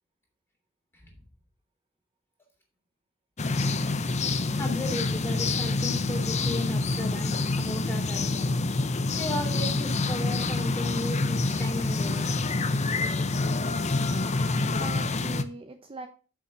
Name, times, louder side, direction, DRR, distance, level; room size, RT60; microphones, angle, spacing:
sound 1, 3.4-15.4, left 3 dB, 35° left, 0.7 m, -27 dB
voice 1, 4.6-8.6 9.1-12.3, left 1 dB, 10° left, 0 dB, 3.1 m, -35 dB
voice 2, 14.4-16.1, right 2 dB, 25° right, 6 dB, 0.7 m, -41 dB
6.9 x 6.3 x 6.1 m, 0.36 s
head